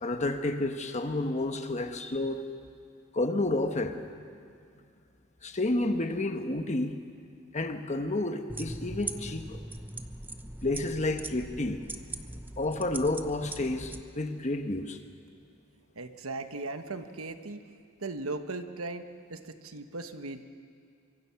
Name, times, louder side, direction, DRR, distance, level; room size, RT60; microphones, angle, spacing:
voice 1, 0.0-2.4 3.1-4.0 5.4-7.0 7.5-9.6 10.6-11.8 12.6-15.0, left 2 dB, 35° left, 7 dB, 1.2 m, -30 dB
sound 1, 8.5-14.0, right 2 dB, 10° right, 0.7 m, -41 dB
voice 2, 15.9-17.6 18.0-20.4, right 3 dB, 75° right, 8 dB, 1.2 m, -38 dB
25.0 x 23.0 x 5.8 m, 2.3 s
head